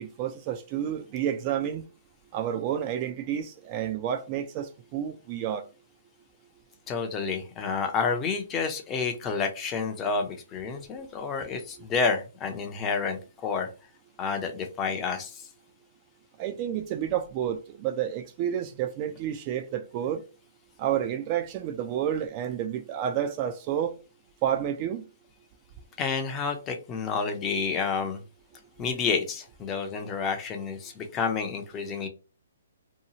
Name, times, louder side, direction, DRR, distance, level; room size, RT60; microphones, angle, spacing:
voice 1, 0.0-1.8 2.3-5.6 16.4-20.2 20.8-23.9 24.4-25.0, right 10 dB, 30° right, 0.3 m, -30 dB
voice 2, 6.9-13.7 14.2-15.5 26.0-28.2 28.8-32.1, left 5 dB, 20° left, 0.5 m, -29 dB
2.8 x 2.3 x 2.8 m
hypercardioid pair, 145°, 0 cm